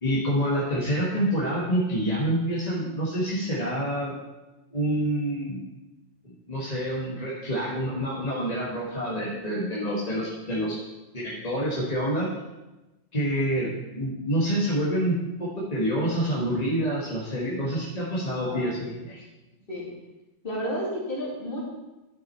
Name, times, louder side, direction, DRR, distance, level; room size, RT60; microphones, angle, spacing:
voice 1, 0.0-4.1 4.7-5.6 6.2-10.8 11.1-12.3 13.1-19.2, equal, 35° left, -6 dB, 1.6 m, -27 dB
voice 2, 18.4-19.0 19.7-19.9 20.4-21.7, equal, 50° left, -5 dB, 2.8 m, -32 dB
11.5 x 6.1 x 4.4 m, 1.1 s
omnidirectional pair, 1.2 m